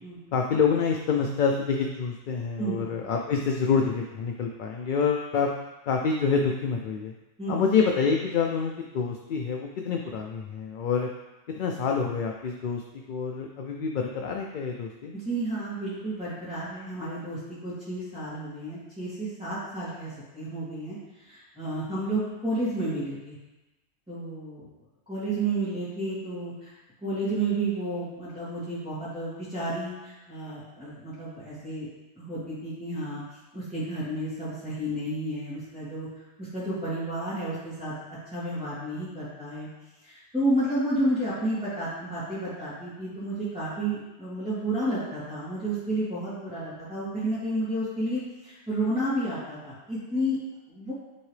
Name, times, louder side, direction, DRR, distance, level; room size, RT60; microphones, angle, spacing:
voice 1, 0.3-5.5 5.9-7.1 7.5-11.1 11.6-15.1, left 5 dB, 55° left, 1 dB, 0.6 m, -27 dB
voice 2, 15.1-23.4 24.1-24.7 25.1-26.7 27.0-31.9 32.2-33.2 33.5-36.1 36.4-37.9 38.3-39.7 40.0-50.4 50.7-50.9, right 1 dB, 5° right, -13 dB, 2.2 m, -31 dB
9.9 x 3.7 x 3.2 m, 1.0 s
omnidirectional pair, 1.1 m